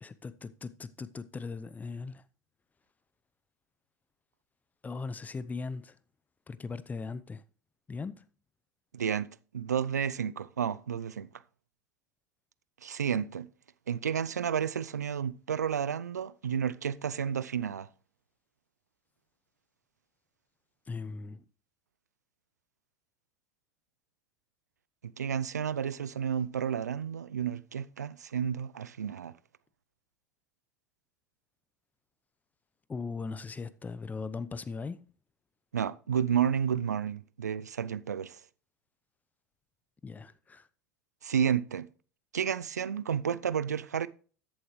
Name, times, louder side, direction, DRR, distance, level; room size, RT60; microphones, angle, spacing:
voice 1, 0.0-2.2 4.8-6.0 6.5-7.4 7.9-8.2 20.9-21.4 32.9-35.0 40.0-40.7, left 4 dB, 20° left, 0.7 m, -39 dB
voice 2, 8.9-9.3 9.5-11.3 12.8-13.5 13.9-17.9 25.2-29.3 35.7-38.4 41.2-41.9 42.3-44.1, right 8 dB, 85° right, 0.5 m, -31 dB
13.5 x 8.5 x 3.1 m
hypercardioid pair, 80°, 9 cm